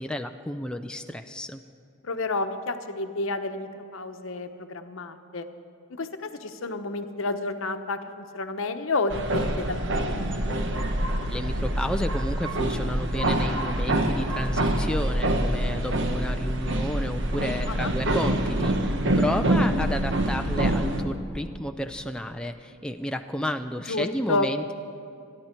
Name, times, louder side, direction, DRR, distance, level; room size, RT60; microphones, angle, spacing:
voice 1, 0.0-1.6 11.3-24.7, left 1 dB, 5° left, 6 dB, 0.4 m, -32 dB
voice 2, 2.0-5.5 5.9-10.7 17.7-17.9 23.9-24.5, left 2 dB, 65° left, 7 dB, 0.9 m, -30 dB
sound 1, 9.1-21.0, right 1 dB, 60° right, 1.1 m, -26 dB
27.5 x 11.0 x 4.4 m, 2.7 s
head